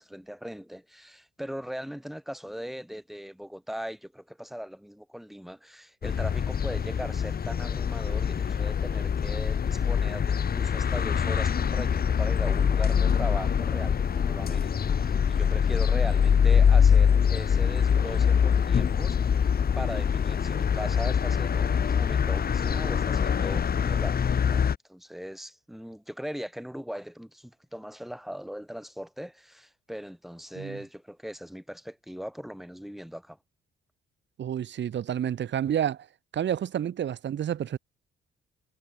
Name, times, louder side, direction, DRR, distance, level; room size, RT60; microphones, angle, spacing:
voice 1, 0.0-19.5 19.8-33.4, equal, ahead, 7.0 m, -39 dB
sound 1, 6.0-24.8, left 7 dB, 50° left, 4.4 m, -24 dB
voice 2, 34.4-36.0 36.3-37.8, right 10 dB, 65° right, 7.8 m, -29 dB
cardioid pair, 90°, 20 cm